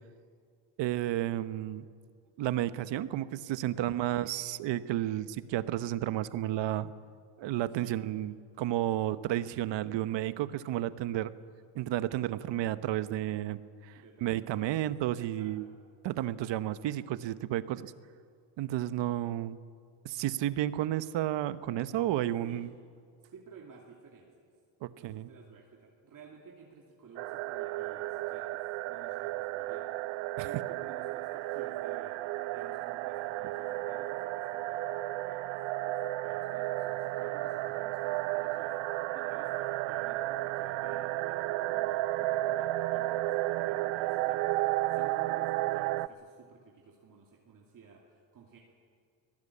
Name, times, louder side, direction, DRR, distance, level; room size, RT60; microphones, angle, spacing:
voice 1, 0.8-1.9 2.4-6.9 7.4-11.3 11.7-15.7 16.0-17.9 18.6-19.6 20.0-22.7 24.8-25.3 30.4-30.5, right 13 dB, 65° right, 14 dB, 1.0 m, -32 dB
voice 2, 3.7-4.2 7.7-8.0 13.9-14.9 15.2-15.8 22.4-22.7 23.2-24.5 24.8-29.9 30.4-35.5 35.9-48.6, right 5 dB, 40° right, -1 dB, 2.6 m, -55 dB
sound 1, 27.2-46.1, right 17 dB, 80° right, 0.7 m, -33 dB
24.5 x 17.5 x 8.5 m, 2.3 s
cardioid pair, 140°, 47 cm